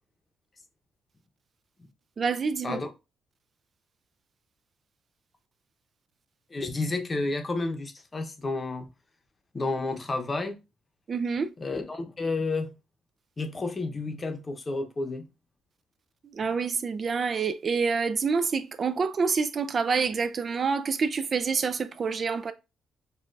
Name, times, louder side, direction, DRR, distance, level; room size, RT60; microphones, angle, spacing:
voice 1, 2.2-2.8 11.1-11.5 16.3-22.5, right 5 dB, 35° right, 0.3 m, -27 dB
voice 2, 6.5-8.9 9.5-10.6 11.6-12.7 13.4-15.2, left 3 dB, 25° left, 0.7 m, -31 dB
6.3 x 2.3 x 2.5 m
cardioid pair, 140°, 0 cm